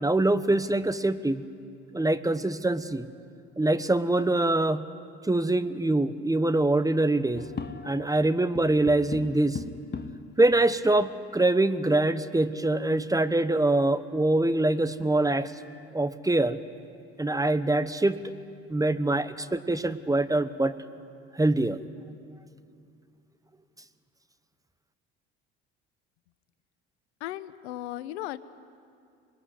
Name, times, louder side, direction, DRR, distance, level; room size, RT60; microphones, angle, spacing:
voice 1, 0.0-1.4 1.9-3.1 3.6-4.9 5.3-7.5 7.8-9.6 10.4-15.5 15.9-16.6 17.2-18.2 18.7-20.7 21.4-21.8, right 2 dB, 10° right, 13 dB, 1.1 m, -24 dB
sound 1, 7.3-8.2 8.5-10.3 11.1-11.2 11.4-11.5 12.2-13.1 14.8-14.9 15.4-15.9 16.3-16.4 17.0-17.9, left 5 dB, 30° left, 1.6 m, -41 dB
voice 2, 27.2-28.4, left 14 dB, 85° left, 14 dB, 0.9 m, -36 dB
26.0 x 21.0 x 9.8 m, 2.4 s
hypercardioid pair, 65°, 32 cm